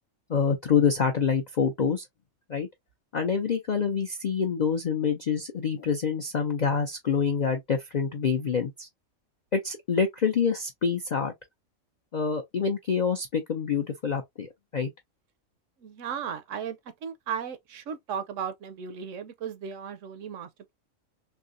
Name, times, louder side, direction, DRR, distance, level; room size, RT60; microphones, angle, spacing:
voice 1, 0.3-2.1 2.5-2.7 3.1-8.9 9.5-11.3 12.1-14.9, left 6 dB, 65° left, 0.4 m, -26 dB
voice 2, 15.8-20.7, right 7 dB, 70° right, 0.9 m, -36 dB
3.4 x 2.8 x 2.5 m
omnidirectional pair, 1.4 m